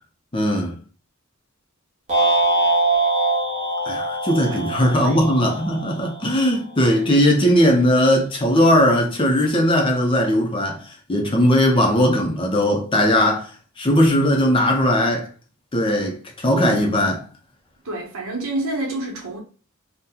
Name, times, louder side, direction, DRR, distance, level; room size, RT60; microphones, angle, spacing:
voice 1, 0.3-0.8 3.8-10.8 11.1-13.5 13.8-15.3 15.7-17.2, equal, 25° left, 0.5 m, -18 dB
sound 1, 2.1-6.4, right 2 dB, 30° right, 0.8 m, -22 dB
voice 2, 4.9-5.2 17.8-19.4, right 2 dB, 75° right, 1.0 m, -28 dB
2.8 x 2.1 x 3.7 m
head